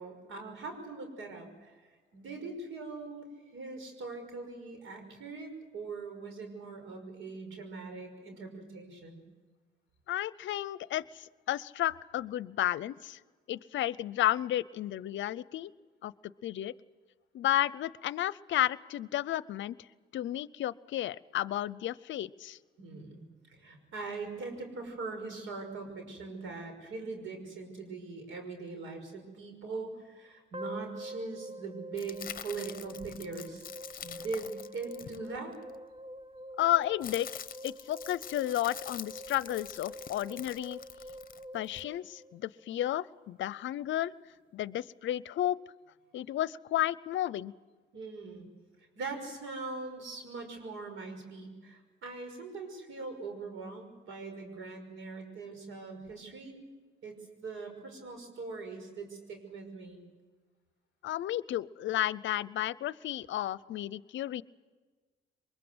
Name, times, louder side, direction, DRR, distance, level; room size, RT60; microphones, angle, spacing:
voice 1, 0.0-9.2 22.8-23.2 23.5-33.7 34.0-35.5 47.9-48.5 49.0-56.6 57.0-60.0, right 3 dB, 80° right, 5 dB, 5.8 m, -41 dB
voice 2, 10.1-13.2 13.5-15.7 16.0-16.7 17.3-19.8 20.1-22.6 36.6-37.3 37.6-40.8 41.5-44.1 44.5-45.6 46.1-47.5 61.0-64.4, left 13 dB, 70° left, 20 dB, 0.7 m, -32 dB
sound 1, 30.5-42.8, right 1 dB, 25° right, 0.8 m, -46 dB
sound 2, 32.0-35.7 36.6-41.8, left 9 dB, 45° left, 0.9 m, -46 dB
24.0 x 21.5 x 8.0 m, 1.4 s
cardioid pair, 90°, 20 cm